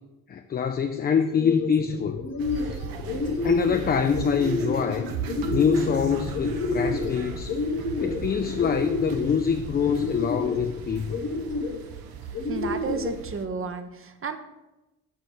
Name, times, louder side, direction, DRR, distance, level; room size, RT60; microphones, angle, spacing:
voice 1, 0.3-2.2 3.4-5.1 5.5-7.6 8.0-11.2, left 7 dB, 25° left, 7 dB, 0.3 m, -25 dB
sound 1, 1.2-1.7 2.1-2.8 3.0-3.8 4.1-4.9 5.3-6.0 6.3-7.1 7.5-8.2 8.6-9.3 9.8-10.6 11.1-11.8 12.3-13.1, left 3 dB, 45° left, 1.0 m, -29 dB
sound 2, 1.5-11.9, left 3 dB, 75° left, 0.9 m, -40 dB
sound 3, 2.4-13.4, right 7 dB, 70° right, 0.7 m, -38 dB
voice 2, 12.4-14.4, right 5 dB, 35° right, 8 dB, 0.7 m, -32 dB
5.1 x 4.6 x 4.4 m, 1.0 s
hypercardioid pair, 40°, 38 cm